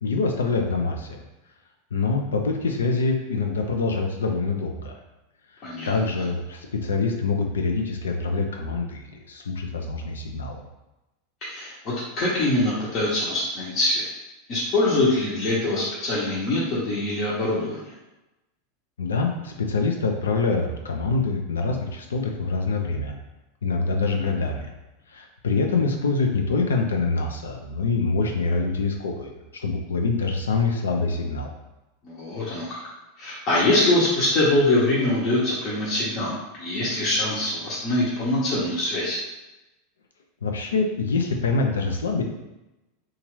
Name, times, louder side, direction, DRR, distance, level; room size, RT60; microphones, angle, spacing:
voice 1, 0.0-1.2 1.9-4.9 5.8-10.6 19.0-23.1 23.6-24.7 25.1-31.5 40.4-42.2, left 3 dB, 80° left, 3 dB, 0.4 m, -25 dB
voice 2, 5.6-6.0 11.4-14.2 14.5-17.8 32.0-32.8 33.2-39.2, left 1 dB, 45° left, -7 dB, 0.8 m, -24 dB
2.8 x 2.4 x 3.0 m, 0.99 s
hypercardioid pair, 90°, 0 cm